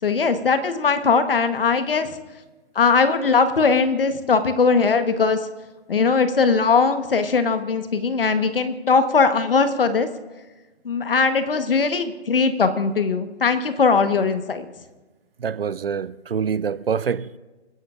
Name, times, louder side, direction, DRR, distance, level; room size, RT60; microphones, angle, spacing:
voice 1, 0.0-2.1 2.7-5.4 5.9-10.1 10.8-14.7, left 5 dB, 55° left, 1.2 m, -20 dB
voice 2, 15.4-17.4, right 7 dB, 55° right, 0.5 m, -25 dB
28.5 x 10.5 x 2.5 m
hypercardioid pair, 175°, 34 cm